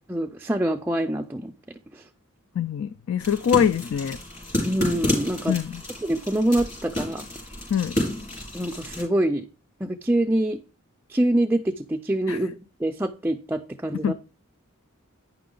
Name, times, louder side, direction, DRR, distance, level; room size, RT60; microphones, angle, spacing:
voice 1, 0.1-1.5 1.9-2.1 4.6-5.5 6.0-7.2 8.5-9.4 9.8-10.6 11.1-12.5 12.8-14.1, right 1 dB, 10° right, 0.4 m, -25 dB
voice 2, 2.6-4.2 5.5-5.8 7.7-8.0 12.3-12.4 14.0-14.1, left 8 dB, 65° left, 0.3 m, -24 dB
sound 1, 3.2-9.0, left 1 dB, 35° left, 4.5 m, -31 dB
9.4 x 5.9 x 3.8 m
head